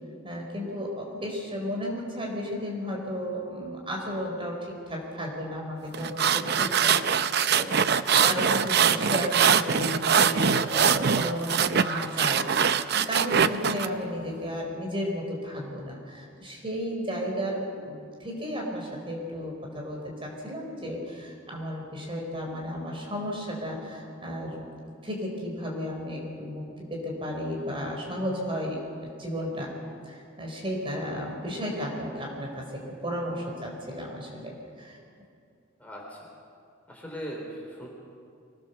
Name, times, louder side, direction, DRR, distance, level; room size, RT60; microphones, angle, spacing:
voice 1, 0.2-7.7 8.2-24.7 25.0-29.7 30.0-35.0, equal, 25° right, -1 dB, 4.1 m, -33 dB
sound 1, 5.9-13.9, right 7 dB, 50° right, 0.6 m, -23 dB
voice 2, 35.8-36.3 36.9-37.9, equal, 5° left, -3 dB, 3.6 m, -39 dB
24.0 x 18.5 x 6.8 m, 2.3 s
head